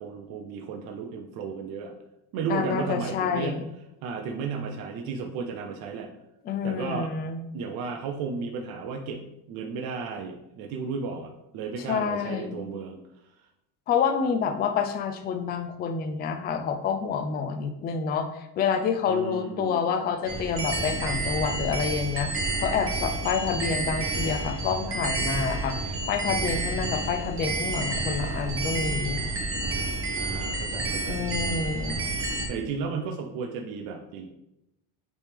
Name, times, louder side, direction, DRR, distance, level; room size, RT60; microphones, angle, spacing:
voice 1, 0.0-1.9 2.3-3.6 4.0-6.1 6.6-7.1 7.5-13.0 19.1-19.8 30.2-31.3 32.5-34.3, right 5 dB, 55° right, 2 dB, 0.7 m, -34 dB
voice 2, 2.5-3.7 6.4-7.4 11.9-12.6 13.9-22.3 22.6-29.2 31.1-32.1, left 6 dB, 25° left, 7 dB, 0.4 m, -28 dB
sound 1, 20.3-32.5, right 2 dB, 30° right, 1.3 m, -30 dB
8.5 x 3.4 x 3.4 m, 0.88 s
cardioid pair, 140°, 45 cm